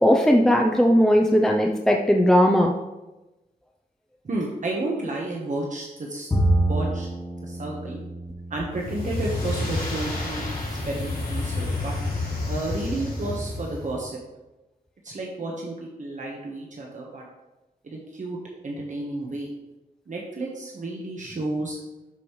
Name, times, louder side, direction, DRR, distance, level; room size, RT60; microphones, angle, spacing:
voice 1, 0.0-2.7, equal, 5° left, 1 dB, 0.5 m, -18 dB
voice 2, 4.2-6.3 6.7-7.1 7.4-8.0 8.5-10.4 10.8-11.9 12.5-14.1 15.0-17.2 17.8-19.5 20.1-21.8, right 2 dB, 50° right, -2 dB, 1.1 m, -31 dB
Bowed string instrument, 6.3-9.7, right 1 dB, 20° left, 1.1 m, -27 dB
sound 1, 8.7-14.0, left 2 dB, 70° left, 3.1 m, -29 dB
12.0 x 5.3 x 3.1 m, 1.1 s
wide cardioid pair, 135°, 16 cm